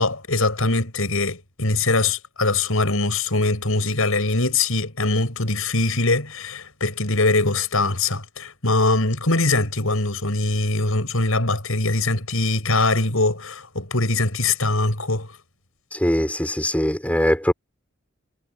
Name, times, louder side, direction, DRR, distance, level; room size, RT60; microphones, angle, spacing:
voice 1, 0.0-15.3, left 2 dB, 80° left, 6.1 m, -22 dB
voice 2, 15.9-17.5, equal, 5° left, 6.4 m, -21 dB
head